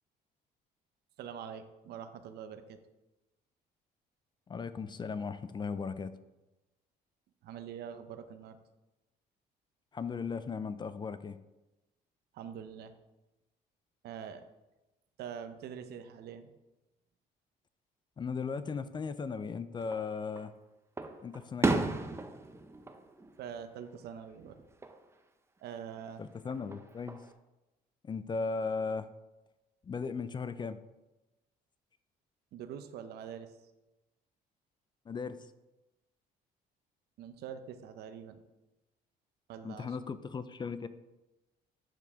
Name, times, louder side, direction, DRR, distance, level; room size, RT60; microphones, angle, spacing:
voice 1, 1.2-2.8 7.4-8.6 12.3-12.9 14.0-14.4 15.2-16.5 23.4-24.6 25.6-26.2 32.5-33.5 37.2-38.4 39.5-40.0, right 8 dB, 70° right, 9 dB, 0.8 m, -44 dB
voice 2, 4.5-6.1 9.9-11.4 18.2-20.5 21.2-21.9 26.2-27.2 28.0-29.1 29.8-30.8 35.1-35.4 39.6-40.9, left 5 dB, 25° left, 13 dB, 0.4 m, -37 dB
Fireworks, 19.8-20.5 21.0-24.1 24.4-25.0 26.5-27.3, right 3 dB, 15° right, 0.7 m, -35 dB
9.5 x 6.8 x 3.6 m, 1.0 s
cardioid pair, 110°, 17 cm